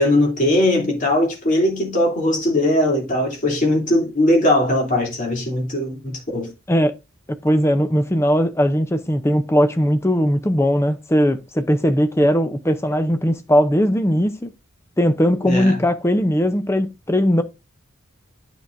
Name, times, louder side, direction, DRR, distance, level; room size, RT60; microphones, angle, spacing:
voice 1, 0.0-6.5 15.4-15.8, left 1 dB, 40° left, 2.8 m, -19 dB
voice 2, 7.3-14.5 15.0-17.4, equal, 15° left, 0.6 m, -19 dB
9.5 x 6.2 x 2.6 m
head